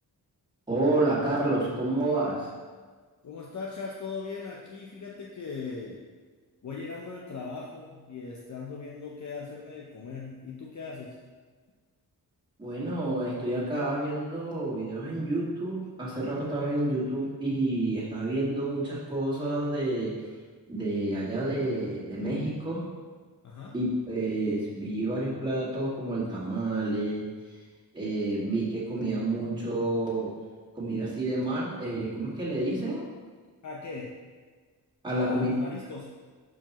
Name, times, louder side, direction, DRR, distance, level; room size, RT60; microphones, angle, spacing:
voice 1, 0.7-2.5 12.6-20.1 20.7-22.8 23.7-27.2 27.9-30.3 30.8-33.1 35.0-35.5, right 2 dB, 10° right, -9 dB, 1.9 m, -29 dB
voice 2, 3.2-6.0 6.6-11.2 23.4-23.8 33.6-34.2 35.0-36.2, left 4 dB, 50° left, -2 dB, 0.7 m, -39 dB
12.0 x 4.7 x 3.0 m, 1.5 s
wide cardioid pair, 170°, 38 cm